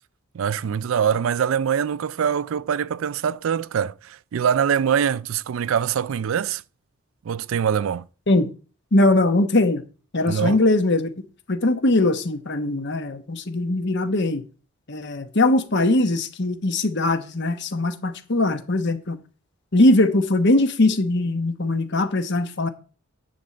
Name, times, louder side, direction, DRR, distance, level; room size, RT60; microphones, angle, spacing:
voice 1, 0.3-6.6 7.2-8.1 10.3-10.6, right 8 dB, 70° right, 0.4 m, -23 dB
voice 2, 8.9-9.8 10.1-11.1 11.5-14.4 14.9-19.2 19.7-22.7, left 2 dB, 55° left, 1.1 m, -21 dB
10.5 x 4.3 x 7.7 m
head